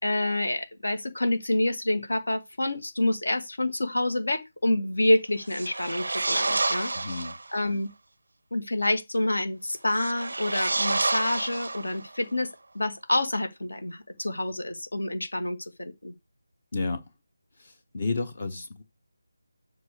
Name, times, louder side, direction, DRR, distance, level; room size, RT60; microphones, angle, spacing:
voice 1, 0.0-7.3 7.5-7.9 8.5-16.1, left 1 dB, 65° left, 2.1 m, -28 dB
sound 1, 5.4-7.5 9.9-12.2, right 2 dB, 60° right, 0.4 m, -29 dB
voice 2, 6.9-7.4 16.7-17.0 17.6-18.8, left 3 dB, 35° left, 1.2 m, -31 dB
7.9 x 5.2 x 6.8 m
figure-of-eight pair, 160°, 0 cm